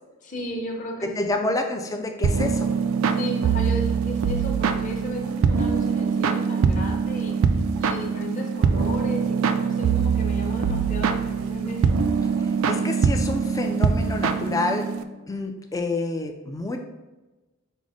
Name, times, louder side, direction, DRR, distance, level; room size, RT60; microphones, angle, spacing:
voice 1, 0.2-1.3 3.1-7.3 7.8-12.0 12.7-12.9, left 1 dB, 35° left, 0 dB, 0.8 m, -34 dB
voice 2, 1.2-2.7 12.4-14.9 15.3-16.8, left 2 dB, 15° left, 5 dB, 0.3 m, -28 dB
sound 1, 2.2-15.0, right 6 dB, 70° right, 0.3 m, -23 dB
5.2 x 2.1 x 4.8 m, 1.1 s
head